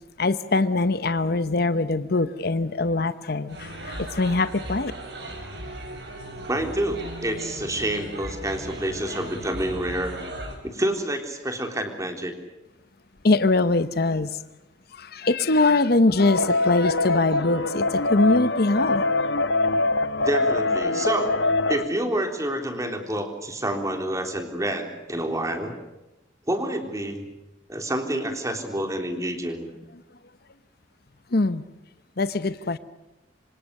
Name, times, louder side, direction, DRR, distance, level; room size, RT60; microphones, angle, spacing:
voice 1, 0.2-4.9 13.2-14.4 14.9-19.0 31.3-31.6 32.2-32.8, left 2 dB, 55° left, 13 dB, 0.9 m, -22 dB
sound 1, 3.5-10.5, right 1 dB, 65° right, 7.3 m, -37 dB
voice 2, 6.5-10.2 10.6-12.3 20.2-21.4 21.7-25.7 26.5-27.3 27.7-29.7, right 1 dB, 20° right, 5 dB, 3.7 m, -28 dB
sound 2, 16.2-21.8, left 2 dB, 80° left, 1.2 m, -24 dB
27.5 x 25.5 x 6.6 m, 1.0 s
head